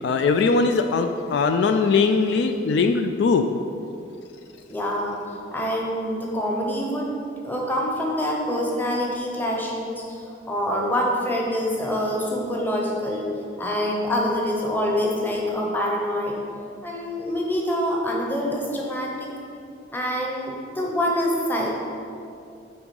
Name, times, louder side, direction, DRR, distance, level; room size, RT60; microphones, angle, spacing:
voice 1, 0.0-3.5, left 4 dB, 60° left, 6 dB, 0.3 m, -20 dB
voice 2, 4.7-5.2 5.5-7.1 7.4-13.3 13.6-16.4 16.8-19.3 19.9-21.7, equal, 10° left, -2 dB, 0.8 m, -25 dB
7.8 x 3.6 x 5.3 m, 2.6 s
head